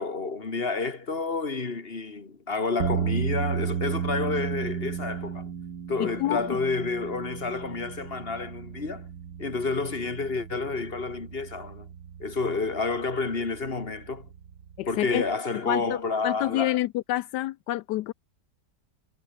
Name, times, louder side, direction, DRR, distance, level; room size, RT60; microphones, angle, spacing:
voice 1, 0.0-5.5 5.9-9.1 9.4-11.9 12.2-14.3 14.9-16.8, left 4 dB, 35° left, 2.6 m, -30 dB
sound 1, 2.8-15.3, right 8 dB, 75° right, 2.0 m, -34 dB
voice 2, 6.0-6.4 14.8-15.2 15.7-16.0 16.2-18.1, left 15 dB, 80° left, 1.2 m, -28 dB
omnidirectional pair, 1.8 m